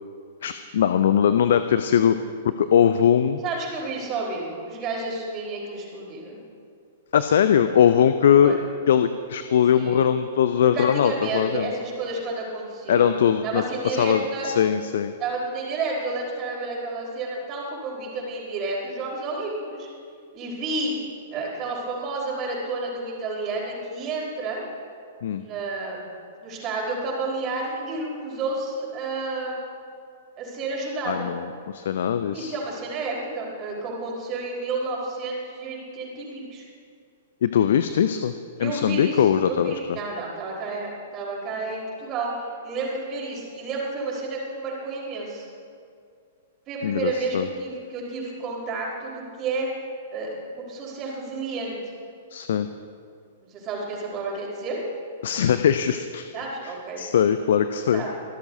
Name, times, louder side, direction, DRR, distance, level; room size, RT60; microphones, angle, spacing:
voice 1, 0.4-2.2 2.4-3.4 7.1-8.6 8.9-11.7 12.9-15.1 25.2-25.4 31.1-32.5 37.4-38.3 38.6-39.7 46.8-47.5 52.3-52.7 55.2-56.3 56.6-58.0, left 8 dB, 60° left, 10 dB, 0.5 m, -21 dB
voice 2, 3.4-6.4 8.3-8.6 9.7-10.1 10.6-13.2 13.4-14.5 15.2-19.9 20.3-20.9 21.3-24.6 25.4-26.1 26.4-29.7 30.4-31.3 32.3-36.7 38.6-42.3 42.6-45.5 46.7-49.7 50.1-51.7 53.5-54.8 56.3-57.0 57.9-58.1, right 3 dB, 30° right, -3 dB, 4.3 m, -31 dB
25.5 x 12.5 x 2.7 m, 2.2 s
figure-of-eight pair, 110°, 0 cm